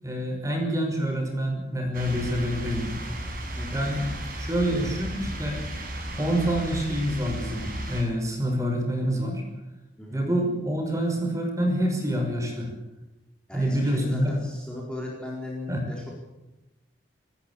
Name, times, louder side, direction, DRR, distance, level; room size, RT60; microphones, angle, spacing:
voice 1, 0.0-2.9 3.7-4.1 4.3-5.6 6.2-9.4 10.1-12.7 13.5-14.3 15.7-15.8, equal, 15° right, 3 dB, 5.7 m, -27 dB
sound 1, 1.9-8.0, right 1 dB, 50° right, 7.1 m, -34 dB
voice 2, 3.6-3.9 4.7-4.8 10.0-10.2 13.5-16.1, left 1 dB, 5° left, -3 dB, 4.5 m, -37 dB
28.0 x 14.0 x 8.5 m, 1.0 s
head